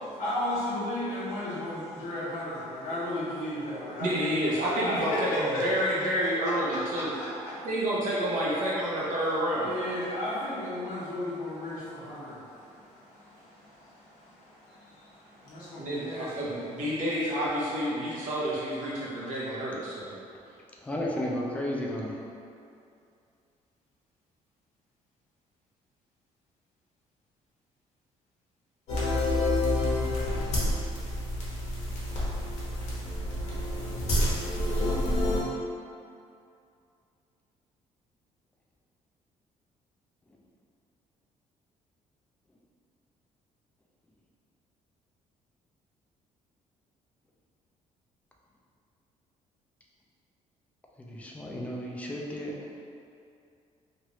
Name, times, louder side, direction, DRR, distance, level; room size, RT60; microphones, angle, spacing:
voice 1, 0.1-4.4 4.8-7.7 9.6-16.6, left 1 dB, 90° left, -8 dB, 1.0 m, -35 dB
voice 2, 4.0-5.3 5.6-7.1 7.6-9.7 15.8-20.1, equal, 70° right, -6 dB, 0.9 m, -29 dB
voice 3, 20.8-22.2 51.0-52.5, left 1 dB, 10° left, -3 dB, 0.4 m, -33 dB
sound 1, 28.9-35.4, left 1 dB, 55° left, 0.9 m, -28 dB
3.1 x 2.5 x 3.0 m, 2.5 s
cardioid pair, 155°, 13 cm